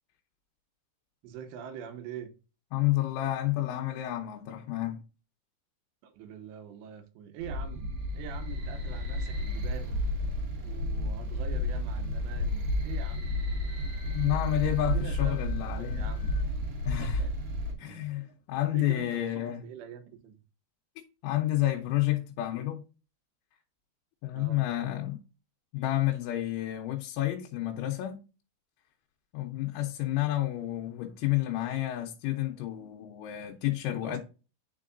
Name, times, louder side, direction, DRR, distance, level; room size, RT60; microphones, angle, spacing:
voice 1, 1.2-2.3 6.0-10.0 10.6-13.4 14.7-15.4 15.8-16.3 17.0-17.3 17.8-18.1 18.7-19.2 19.6-20.4 24.3-24.7 33.9-34.2, right 8 dB, 80° right, 3.0 m, -44 dB
voice 2, 2.7-5.0 14.1-16.1 16.9-17.2 17.8-19.6 21.0-22.8 24.2-25.2 25.7-28.2 29.3-34.2, left 14 dB, 90° left, 3.2 m, -30 dB
sound 1, 7.4-17.7, left 1 dB, 60° right, 2.0 m, -31 dB
Wind instrument woodwind instrument, 13.7-16.5, left 15 dB, 45° left, 2.2 m, -56 dB
9.9 x 4.6 x 2.5 m
omnidirectional pair, 5.3 m